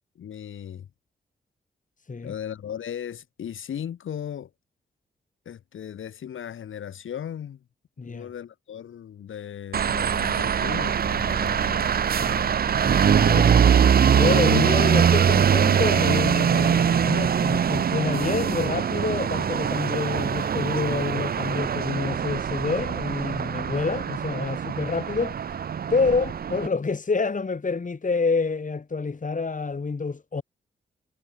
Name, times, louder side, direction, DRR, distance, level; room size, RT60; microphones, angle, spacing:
voice 1, 0.2-0.9 2.2-4.5 5.5-7.6 8.0-11.9, left 9 dB, 75° left, 7.7 m, -37 dB
voice 2, 8.0-8.3 12.2-13.6 14.1-25.6 25.9-30.4, left 4 dB, 40° left, 2.3 m, -28 dB
sound 1, 9.7-26.7, right 8 dB, 50° right, 0.6 m, -22 dB
supercardioid pair, 40°, 21 cm